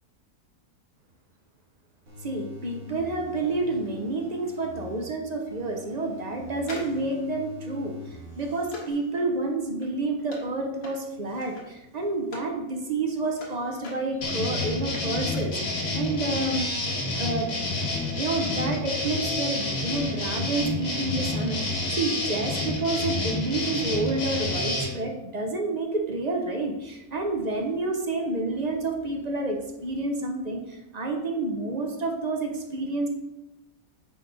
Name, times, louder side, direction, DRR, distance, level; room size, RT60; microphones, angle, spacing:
sound 1, 2.1-5.1 5.5-8.5 8.9-9.0, left 1 dB, 60° right, 2.6 m, -45 dB
voice 1, 2.2-7.9 8.4-16.7 17.2-17.5 18.2-33.1, right 2 dB, 40° right, 3 dB, 0.6 m, -29 dB
sound 2, 6.6-12.6 12.9-15.6 15.8-15.9, left 2 dB, 75° left, 1.9 m, -45 dB
sound 3, 14.2-24.9, left 2 dB, 60° left, 1.6 m, -29 dB
9.4 x 3.5 x 3.9 m, 0.95 s
omnidirectional pair, 1.7 m